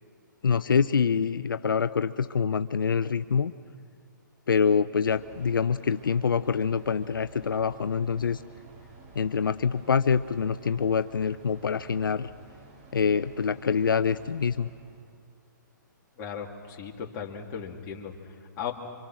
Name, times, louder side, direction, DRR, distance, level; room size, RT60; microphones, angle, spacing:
voice 1, 0.4-3.5 4.5-8.4 9.2-12.3 12.9-14.7, left 6 dB, 90° left, 12 dB, 0.5 m, -25 dB
sound 1, 5.0-15.1, right 4 dB, 35° right, 3.8 m, -51 dB
voice 2, 16.2-18.7, left 7 dB, 30° left, 0 dB, 2.5 m, -37 dB
28.0 x 25.0 x 6.2 m, 2.1 s
hypercardioid pair, 140°, 11 cm